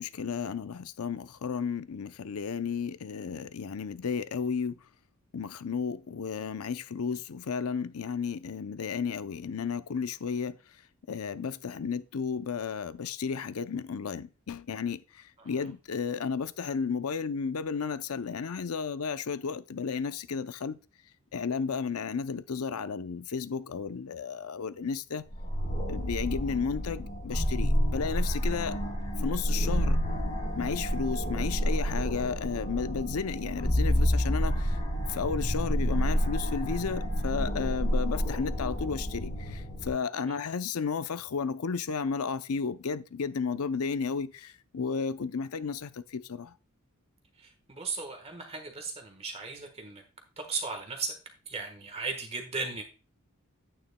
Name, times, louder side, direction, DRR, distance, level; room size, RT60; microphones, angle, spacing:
voice 1, 0.0-4.8 5.3-10.5 11.1-15.0 15.5-20.8 21.3-25.2 25.9-28.8 29.2-30.0 30.6-34.8 35.1-46.5, left 5 dB, 80° left, 0.6 m, -33 dB
voice 2, 15.4-15.7 40.3-40.4 47.4-50.0 50.4-51.1 51.4-52.8, right 4 dB, 30° right, 1.3 m, -37 dB
sound 1, 25.3-39.9, equal, 35° left, 2.1 m, -29 dB
9.7 x 9.0 x 2.2 m
head